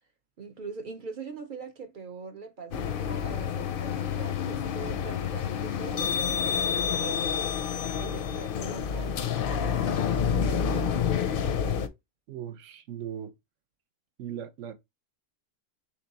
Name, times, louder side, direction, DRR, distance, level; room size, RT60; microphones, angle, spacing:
voice 1, 0.4-7.4 7.9-11.3, right 4 dB, 55° right, 0.5 m, -43 dB
sound 1, 2.7-11.9, left 8 dB, 60° left, 0.6 m, -28 dB
voice 2, 12.3-13.3 14.2-14.7, right 10 dB, 75° right, 0.9 m, -38 dB
3.5 x 2.9 x 4.0 m
omnidirectional pair, 1.3 m